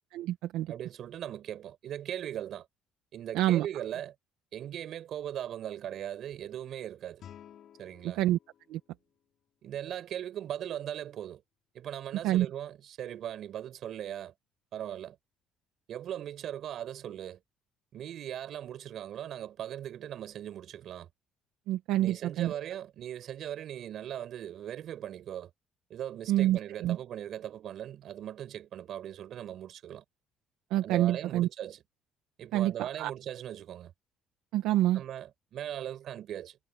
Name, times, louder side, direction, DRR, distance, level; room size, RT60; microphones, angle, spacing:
voice 1, 0.1-0.7 3.3-3.7 8.0-8.4 8.7-8.8 12.2-12.5 21.7-22.5 26.3-27.0 30.7-31.5 32.5-33.1 34.5-35.0, right 14 dB, 75° right, 1.4 m, -27 dB
voice 2, 0.7-2.7 3.1-4.1 4.5-7.2 7.8-8.2 9.6-11.4 11.7-14.3 14.7-15.2 15.9-17.4 17.9-21.1 22.0-25.5 25.9-30.0 30.8-31.8 32.4-33.9 34.9-36.6, right 10 dB, 45° right, 5.2 m, -39 dB
sound 1, 7.2-10.2, left 10 dB, 40° left, 4.7 m, -55 dB
cardioid pair, 175°, 0 cm